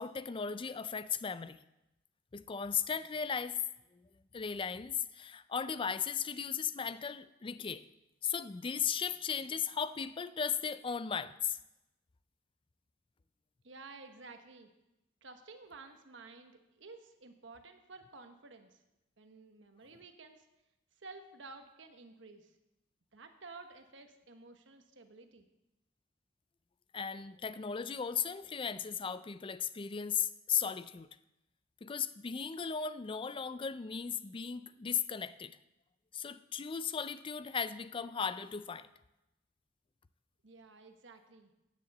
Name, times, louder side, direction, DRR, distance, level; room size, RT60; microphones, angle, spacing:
voice 1, 0.0-1.6 2.3-3.6 4.3-7.8 8.2-11.6 26.9-31.1 31.8-35.6 36.1-38.9, left 7 dB, 25° left, 14 dB, 0.4 m, -36 dB
voice 2, 13.6-14.7 15.2-18.8 19.2-20.5 21.0-22.5 23.1-25.4 40.4-41.5, right 3 dB, 65° right, 7 dB, 1.1 m, -53 dB
9.3 x 6.8 x 7.8 m, 0.94 s
head